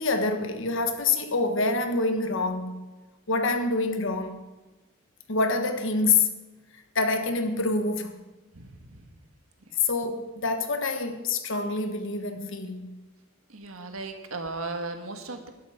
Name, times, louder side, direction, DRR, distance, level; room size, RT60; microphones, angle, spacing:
voice 1, 0.0-2.9 3.3-4.4 5.3-6.3 6.7-8.2 9.8-12.9, left 3 dB, 60° left, 7 dB, 1.3 m, -26 dB
voice 2, 8.5-8.9 13.5-15.5, right 3 dB, 75° right, 5 dB, 1.7 m, -36 dB
12.0 x 11.5 x 5.2 m, 1.2 s
head